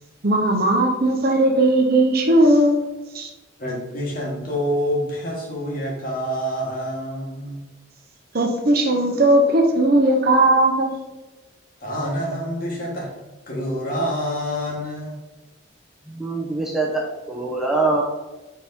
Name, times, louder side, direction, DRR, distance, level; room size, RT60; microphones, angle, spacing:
voice 1, 0.2-2.8 3.1-3.3 8.3-10.9, right 1 dB, 50° right, 3 dB, 0.8 m, -17 dB
voice 2, 3.6-7.7 11.8-13.1 13.5-15.2, equal, 45° left, -2 dB, 1.7 m, -27 dB
voice 3, 16.1-18.0, right 3 dB, 5° right, -3 dB, 0.7 m, -24 dB
5.2 x 4.6 x 4.2 m, 1.1 s
head